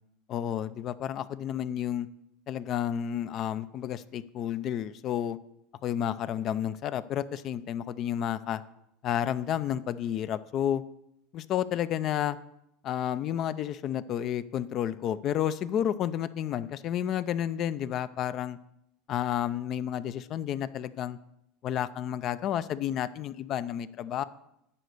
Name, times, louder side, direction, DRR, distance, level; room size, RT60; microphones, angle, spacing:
voice 1, 0.3-2.1 2.5-5.4 5.8-8.6 9.0-10.8 11.3-12.4 12.8-18.6 19.1-21.2 21.6-24.2, left 10 dB, 45° left, 16 dB, 0.4 m, -31 dB
9.9 x 4.1 x 6.6 m, 0.80 s
supercardioid pair, 110°, 0 cm